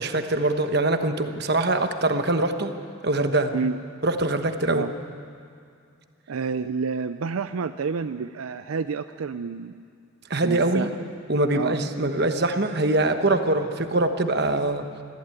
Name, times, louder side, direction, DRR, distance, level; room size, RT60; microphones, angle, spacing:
voice 1, 0.0-2.7 3.0-3.5 4.0-4.8 10.3-10.9 11.3-14.9, right 2 dB, 50° right, 7 dB, 1.2 m, -23 dB
voice 2, 6.3-9.8 10.4-10.9 11.5-11.8, right 5 dB, 80° right, 10 dB, 0.5 m, -29 dB
20.5 x 15.0 x 9.1 m, 2.3 s
head